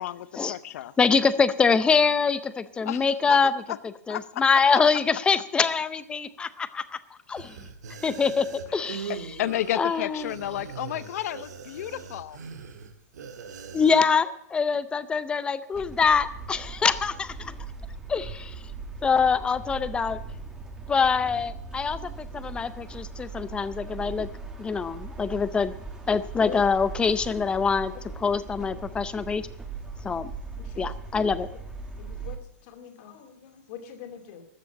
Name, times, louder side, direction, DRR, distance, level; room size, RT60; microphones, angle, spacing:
voice 1, 0.0-0.9 2.8-3.4 3.7-3.8 4.1-4.4 9.1-12.4, left 13 dB, 60° left, 18 dB, 0.7 m, -32 dB
voice 2, 1.0-3.6 4.1-7.0 7.3-7.6 8.0-9.2 9.7-10.3 13.7-17.5 18.1-18.5 19.0-20.2 20.9-24.3 24.6-25.7 26.1-27.9 28.2-29.5 30.0-30.3 30.8-31.5, left 5 dB, 10° left, 14 dB, 0.6 m, -24 dB
sound 1, 7.3-14.0, right 6 dB, 85° right, 1.9 m, -41 dB
sound 2, 15.7-32.4, right 4 dB, 5° right, 1.7 m, -39 dB
voice 3, 30.6-31.0 32.0-34.4, left 9 dB, 45° left, 6 dB, 2.6 m, -44 dB
13.5 x 6.8 x 9.8 m, 0.76 s
hypercardioid pair, 150°, 9 cm